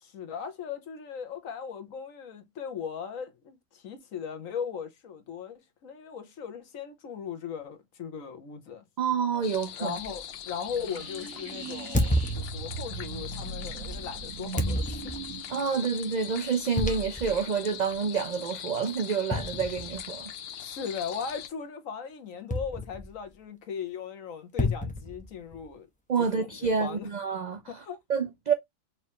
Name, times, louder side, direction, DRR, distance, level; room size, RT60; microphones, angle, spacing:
voice 1, 0.0-8.8 9.8-15.2 20.6-25.9 26.3-27.1 27.7-28.0, left 7 dB, 80° left, 1.4 m, -38 dB
voice 2, 9.0-10.0 15.5-20.3 26.1-27.8 28.1-28.5, right 5 dB, 70° right, 0.4 m, -28 dB
sound 1, 9.4-21.5, left 10 dB, 60° left, 0.7 m, -41 dB
sound 2, 10.0-10.2 11.9-13.0 14.6-15.4 16.8-17.4 17.9-18.0 19.3-20.2 22.5-23.3 24.6-25.7, left 1 dB, 5° left, 0.7 m, -30 dB
sound 3, 10.7-17.4, right 5 dB, 85° right, 1.6 m, -40 dB
4.7 x 3.0 x 3.0 m
omnidirectional pair, 1.4 m